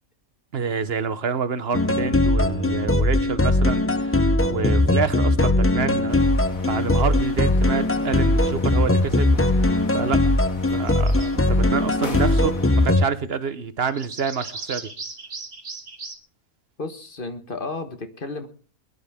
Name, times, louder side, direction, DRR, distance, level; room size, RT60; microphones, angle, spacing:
voice 1, 0.5-6.2 6.7-9.7 9.9-10.3 10.7-14.9, right 6 dB, 50° right, 13 dB, 1.2 m, -28 dB
sound 1, 1.7-13.1, left 2 dB, 20° left, 0.3 m, -20 dB
sound 2, 6.1-12.9, left 3 dB, 75° left, 2.5 m, -40 dB
sound 3, 10.9-11.3 12.4-12.9 13.8-16.1, right 3 dB, 70° right, 2.4 m, -37 dB
voice 2, 16.8-18.5, left 3 dB, 40° left, 8 dB, 1.5 m, -33 dB
22.0 x 11.5 x 3.6 m, 0.40 s
omnidirectional pair, 1.4 m